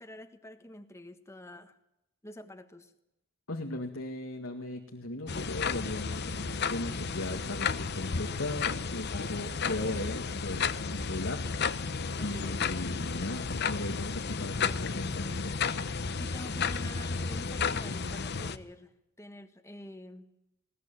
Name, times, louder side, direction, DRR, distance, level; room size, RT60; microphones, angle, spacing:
voice 1, 0.0-1.8 2.2-2.9 12.2-12.6 16.2-18.9 19.2-20.3, left 1 dB, 15° left, 7 dB, 1.5 m, -47 dB
voice 2, 3.5-11.4 12.1-15.6, left 2 dB, 80° left, 3 dB, 1.9 m, -38 dB
sound 1, 5.3-18.6, left 5 dB, 55° left, 0.9 m, -33 dB
sound 2, 5.4-11.3, equal, 75° right, 1.6 m, -50 dB
20.0 x 18.0 x 9.1 m, 0.86 s
head